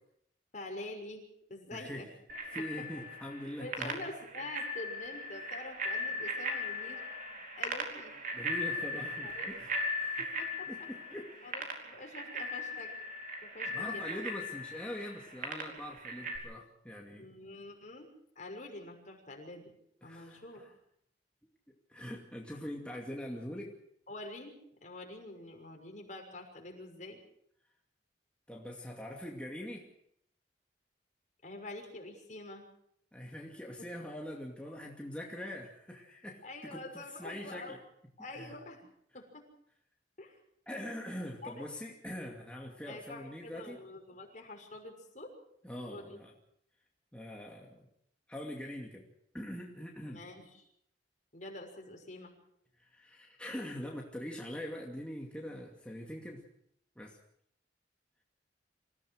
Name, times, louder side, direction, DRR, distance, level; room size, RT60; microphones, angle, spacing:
voice 1, 0.5-1.2 1.5-2.1 2.6-3.1 3.6-7.0 7.6-8.1 9.2-9.5 10.2-10.9 11.4-12.9 13.4-14.2 17.1-18.1 18.4-19.7 20.0-20.6 24.1-24.5 24.8-27.2 31.4-32.7 36.4-37.8 38.2-38.8 39.1-39.4 40.2-40.4 41.4-41.6 42.9-45.3 45.9-46.2 50.1-50.5 51.3-52.3, left 2 dB, 45° left, 2 dB, 6.2 m, -46 dB
voice 2, 1.7-2.1 2.5-4.1 8.3-10.3 10.7-11.3 13.7-17.3 20.0-20.7 21.9-23.8 28.5-29.9 33.1-37.8 38.3-38.5 40.7-43.8 45.6-46.3 47.1-47.8 48.3-49.1 49.3-50.2 52.8-56.4 57.0-57.2, equal, 5° left, -1 dB, 2.4 m, -43 dB
Bicycle bell, 2.3-16.4, left 1 dB, 50° right, 4.5 m, -38 dB
26.5 x 17.0 x 6.5 m, 0.71 s
head